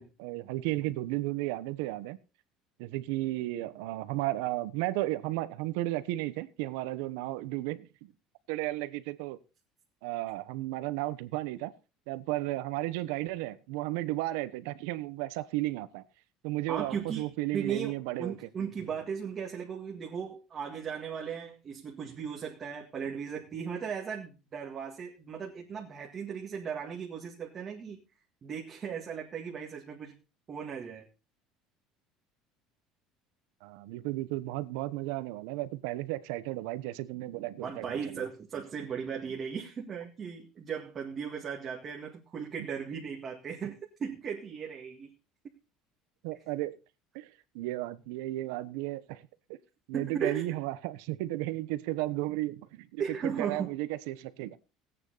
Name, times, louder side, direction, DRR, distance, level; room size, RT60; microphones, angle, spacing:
voice 1, 0.0-2.2 2.8-7.9 8.5-9.4 10.0-11.7 12.1-16.0 16.4-18.4 33.6-38.2 46.2-46.7 47.1-47.3 47.5-49.2 49.9-54.6, right 17 dB, 80° right, 14 dB, 1.1 m, -34 dB
voice 2, 16.7-28.0 28.4-30.1 30.5-31.1 37.6-45.1 49.9-50.5 53.0-53.7, right 7 dB, 25° right, -1 dB, 1.9 m, -37 dB
17.5 x 9.1 x 4.1 m, 0.31 s
cardioid pair, 175°, 0 cm